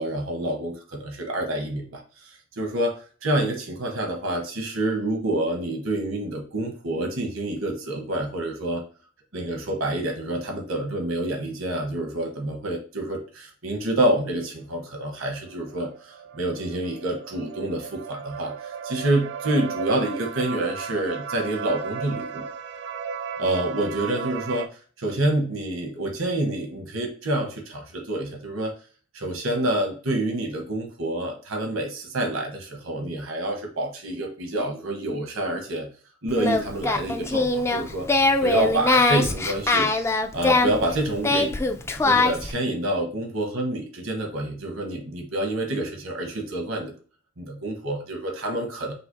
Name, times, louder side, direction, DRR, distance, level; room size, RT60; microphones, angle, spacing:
voice 1, 0.0-8.8 9.3-22.4 23.4-24.7 25.0-28.7 29.1-35.9 36.2-38.1 38.4-39.9 40.3-41.6 42.0-46.9 47.4-48.9, right 1 dB, 75° right, 1 dB, 1.1 m, -27 dB
sound 1, 15.4-24.7, right 6 dB, 60° right, 0.4 m, -35 dB
Singing, 36.3-42.5, left 3 dB, 15° left, 0.3 m, -22 dB
5.6 x 2.0 x 3.9 m, 0.39 s
head